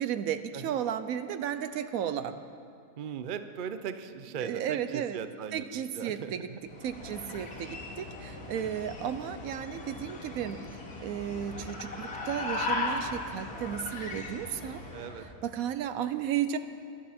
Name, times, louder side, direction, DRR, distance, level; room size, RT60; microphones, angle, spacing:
voice 1, 0.0-2.4 4.4-5.2 5.5-6.5 6.8-10.6 11.0-14.8 15.2-16.6, right 9 dB, 75° right, 11 dB, 1.0 m, -34 dB
voice 2, 3.0-5.7 6.0-6.6 7.0-7.1 14.9-15.3 16.2-16.3, right 7 dB, 55° right, 10 dB, 0.5 m, -39 dB
sound 1, 6.6-15.3, left 2 dB, 85° left, 2.4 m, -38 dB
22.5 x 10.0 x 4.3 m, 2.4 s
omnidirectional pair, 1.6 m